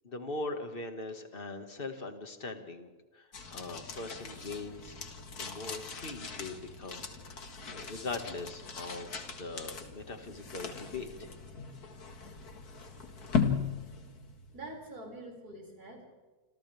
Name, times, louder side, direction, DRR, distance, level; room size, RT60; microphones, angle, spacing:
voice 1, 0.0-5.0 5.3-11.3, left 3 dB, 35° left, 5 dB, 2.3 m, -41 dB
sound 1, 3.3-14.7, left 6 dB, 85° left, 2.4 m, -38 dB
voice 2, 14.0-16.1, right 2 dB, 85° right, 0 dB, 6.8 m, -46 dB
27.5 x 27.0 x 3.6 m, 1.3 s
omnidirectional pair, 1.6 m